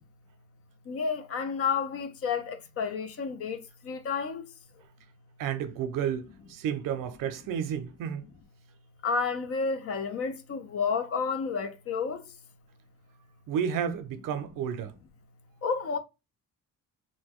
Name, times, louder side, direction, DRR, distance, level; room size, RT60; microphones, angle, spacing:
voice 1, 0.9-4.4 9.0-12.2 15.6-16.0, left 5 dB, 45° left, 0.5 m, -30 dB
voice 2, 5.4-8.3 13.5-15.0, right 8 dB, 75° right, 0.6 m, -31 dB
2.6 x 2.2 x 3.5 m
cardioid pair, 125°, 33 cm